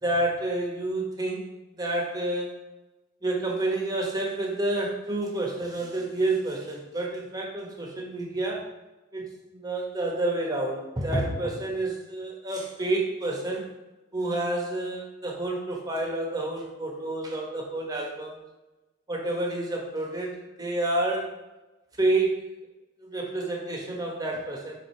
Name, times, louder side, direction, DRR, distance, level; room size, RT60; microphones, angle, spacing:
voice 1, 0.0-1.5 1.8-2.5 3.2-8.7 9.1-13.6 14.1-18.3 19.1-21.3 22.0-22.4 23.0-24.8, right 2 dB, 20° right, 0 dB, 1.2 m, -29 dB
5.0 x 3.7 x 5.7 m, 1.1 s
head